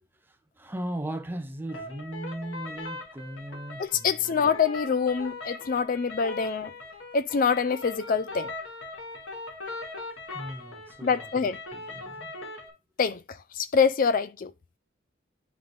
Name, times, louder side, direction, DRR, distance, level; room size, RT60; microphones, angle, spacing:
voice 1, 0.6-4.4 10.3-12.2, right 1 dB, 10° right, 0.7 m, -37 dB
sound 1, 1.7-12.7, left 3 dB, 85° left, 2.5 m, -40 dB
voice 2, 3.8-6.7 7.1-8.5 11.0-11.6 13.0-13.2 13.6-14.5, left 6 dB, 45° left, 0.4 m, -25 dB
9.4 x 3.9 x 3.5 m
head